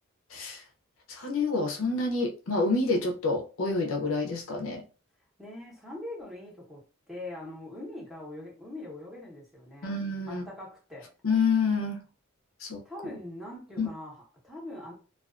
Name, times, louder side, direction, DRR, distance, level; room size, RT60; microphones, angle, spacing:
voice 1, 0.3-0.6 1.1-4.8 9.8-10.4 11.2-12.0 12.6-12.8 13.8-13.9, left 3 dB, 70° left, 0.5 m, -28 dB
voice 2, 5.4-10.0 10.3-11.1 12.8-14.9, left 1 dB, ahead, 0.8 m, -42 dB
2.3 x 2.3 x 2.3 m
head